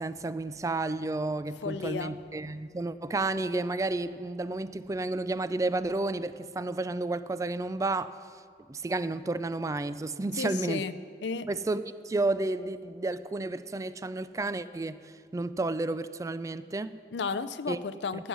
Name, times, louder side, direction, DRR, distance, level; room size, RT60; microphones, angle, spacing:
voice 1, 0.0-8.2 8.7-10.8 11.5-17.0 17.7-17.8 18.1-18.2, right 2 dB, 20° right, 14 dB, 0.3 m, -31 dB
voice 2, 1.6-2.1 10.3-10.9 11.2-11.5 17.1-18.3, left 5 dB, 85° left, 14 dB, 0.5 m, -33 dB
14.0 x 9.5 x 6.2 m, 2.1 s
head